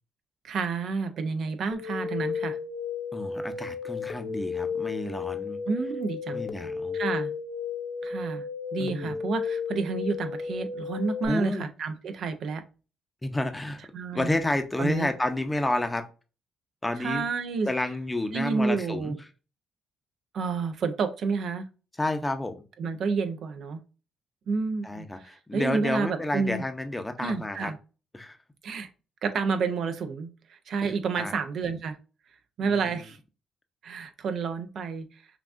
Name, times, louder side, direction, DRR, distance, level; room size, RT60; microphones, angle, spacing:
voice 1, 0.4-2.6 5.7-6.4 6.9-7.3 8.0-8.4 8.7-12.6 13.9-14.3 14.8-15.1 17.0-17.7 18.3-19.2 20.3-21.7 22.8-23.8 24.5-26.6 27.2-27.8 28.6-28.9 29.2-32.0 32.6-33.2 33.8-35.2, right 4 dB, 65° right, 9 dB, 0.5 m, -30 dB
sound 1, 1.7-11.3, left 5 dB, 50° left, 0.7 m, -33 dB
voice 2, 3.1-5.6 6.3-7.0 8.8-9.1 11.2-11.7 13.2-13.8 14.1-16.0 16.8-17.2 17.7-19.2 22.0-22.5 24.8-27.7 28.1-28.4 30.8-31.3 32.6-32.8, left 1 dB, 15° left, 7 dB, 0.6 m, -30 dB
5.8 x 2.4 x 2.5 m, 0.33 s
cardioid pair, 90°, 0 cm